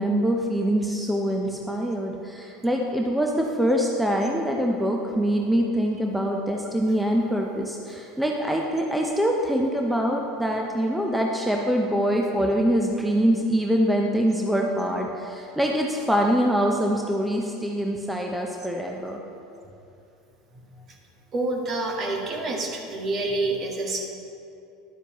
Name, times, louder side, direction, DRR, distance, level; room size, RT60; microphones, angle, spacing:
voice 1, 0.0-19.2, equal, 5° right, 0 dB, 0.8 m, -24 dB
voice 2, 21.3-24.1, right 2 dB, 40° right, 1 dB, 1.6 m, -27 dB
11.0 x 8.8 x 3.1 m, 2.7 s
hypercardioid pair, 80°, 0 cm